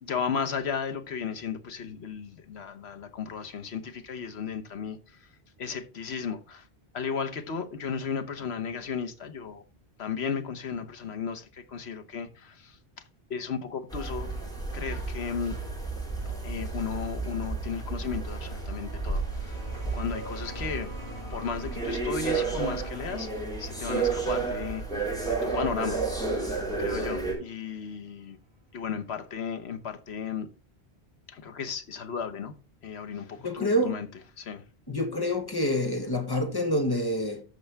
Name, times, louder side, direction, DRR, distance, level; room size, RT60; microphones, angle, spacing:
voice 1, 0.0-5.0 5.6-6.6 6.9-9.6 10.0-12.5 13.3-14.3 14.7-15.5 16.4-19.6 19.9-20.9 21.3-23.3 23.6-24.8 25.3-26.0 26.8-28.4 28.7-30.5 31.3-32.5 32.8-34.1 34.4-34.6, left 6 dB, 75° left, 1.3 m, -34 dB
sound 1, 13.9-27.3, right 4 dB, 5° left, 3.9 m, -32 dB
sound 2, 19.0-28.2 29.4-29.5, left 1 dB, 80° right, 4.7 m, -48 dB
voice 2, 33.4-34.0 34.9-37.4, equal, 20° left, 1.3 m, -27 dB
13.0 x 5.4 x 3.4 m
omnidirectional pair, 1.1 m